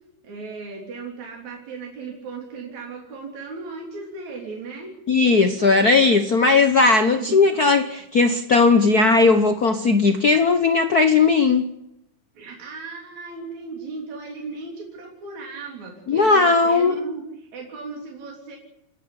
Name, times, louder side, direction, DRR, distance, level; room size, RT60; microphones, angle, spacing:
voice 1, 0.2-4.9 7.1-7.4 12.3-18.6, right 4 dB, 70° right, 4.6 m, -36 dB
voice 2, 5.1-11.6 16.1-17.0, left 4 dB, 70° left, 0.8 m, -17 dB
29.0 x 11.0 x 9.9 m
omnidirectional pair, 3.4 m